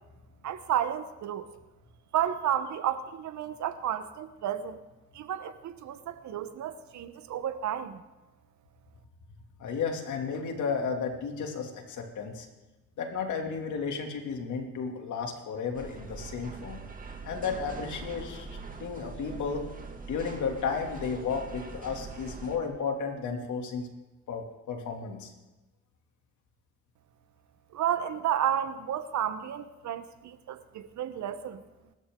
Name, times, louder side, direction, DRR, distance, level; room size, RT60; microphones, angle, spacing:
voice 1, 0.4-1.5 2.1-4.8 5.1-8.0 27.7-31.6, right 10 dB, 70° right, 11 dB, 1.1 m, -32 dB
voice 2, 9.6-12.5 13.0-16.8 17.2-18.5 18.8-19.7 20.1-23.9 24.3-25.3, left 5 dB, 75° left, 3 dB, 2.7 m, -33 dB
sound 1, 15.7-22.6, right 4 dB, 25° right, 2.4 m, -43 dB
26.0 x 13.0 x 3.8 m, 1.1 s
cardioid pair, 90°, 30 cm